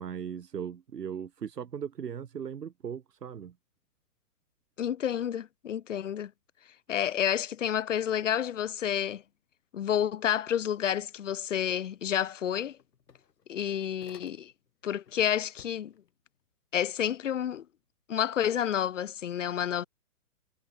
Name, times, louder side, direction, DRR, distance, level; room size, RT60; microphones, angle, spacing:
voice 1, 0.0-3.6, right 8 dB, 85° right, 2.3 m, -38 dB
voice 2, 4.8-6.3 6.9-9.2 9.7-12.8 13.5-14.5 14.8-15.9 16.7-17.6 18.1-19.8, left 9 dB, 50° left, 1.2 m, -29 dB
sound 1, 12.1-12.2 12.4-14.7 15.0-16.1, left 7 dB, 90° left, 4.2 m, -57 dB
hypercardioid pair, 175°, 47 cm